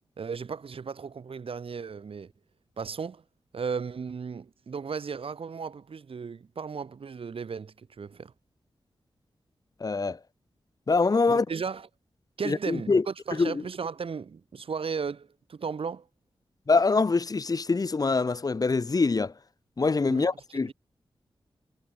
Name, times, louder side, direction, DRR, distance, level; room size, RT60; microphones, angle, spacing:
voice 1, 0.2-2.3 2.8-3.2 3.5-8.3 11.3-11.9 12.4-16.0 20.1-20.3 20.6-20.7, right 5 dB, 75° right, 7.8 m, -35 dB
voice 2, 9.8-10.2 10.9-11.4 12.4-13.0 13.4-13.6 16.7-19.3 19.8-20.7, left 4 dB, 40° left, 1.5 m, -24 dB
wide cardioid pair, 120°, 10 cm